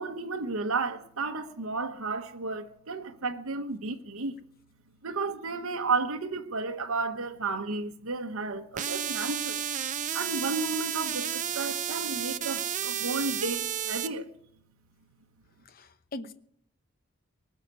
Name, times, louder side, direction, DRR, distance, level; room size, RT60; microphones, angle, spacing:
voice 1, 0.0-4.4 5.0-9.6 10.1-14.3, right 3 dB, 75° right, 1.0 m, -32 dB
sound 1, 8.8-14.1, right 10 dB, 35° right, 0.5 m, -32 dB
voice 2, 15.6-16.3, left 2 dB, 40° left, 0.9 m, -41 dB
19.0 x 6.5 x 9.5 m
head